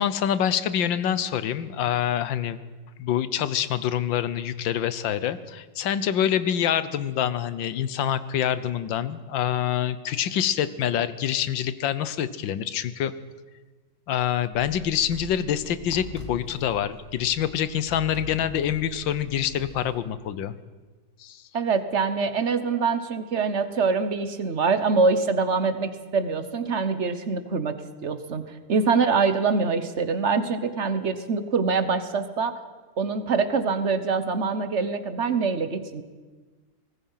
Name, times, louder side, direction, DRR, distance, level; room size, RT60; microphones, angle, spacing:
voice 1, 0.0-2.6 3.0-13.1 14.1-20.5 21.2-21.4, left 10 dB, 80° left, 15 dB, 1.6 m, -26 dB
sound 1, 14.5-20.0, equal, 50° left, 3.0 m, -43 dB
voice 2, 21.5-32.5 33.0-36.0, right 4 dB, 40° right, 11 dB, 1.3 m, -24 dB
24.5 x 19.0 x 5.7 m, 1.3 s
omnidirectional pair, 2.1 m